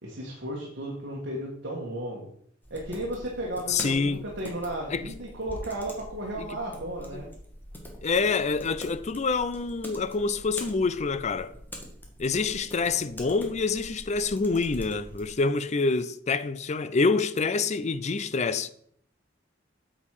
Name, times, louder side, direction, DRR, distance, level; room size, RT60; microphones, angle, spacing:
voice 1, 0.0-2.3 2.7-7.3, right 1 dB, 60° right, 1.8 m, -34 dB
sound 1, 2.6-15.4, equal, 10° left, 1.8 m, -44 dB
voice 2, 3.7-4.2 4.9-5.0 6.4-6.5 7.1-7.2 8.0-11.5 12.2-18.7, left 4 dB, 35° left, 0.5 m, -26 dB
8.3 x 7.4 x 4.9 m
head